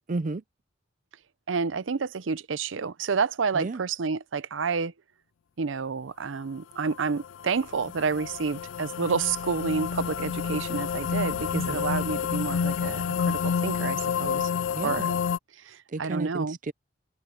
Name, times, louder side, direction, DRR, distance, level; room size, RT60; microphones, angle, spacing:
voice 1, 0.1-0.4 3.5-3.8 11.5-11.8 14.7-15.1 15.9-16.7, right 3 dB, 40° right, 0.5 m, -32 dB
voice 2, 1.5-4.9 5.6-14.5 14.8-15.1 15.6-16.6, right 5 dB, 80° right, 0.6 m, -29 dB
sound 1, 6.9-15.4, left 7 dB, 80° left, 0.4 m, -29 dB
head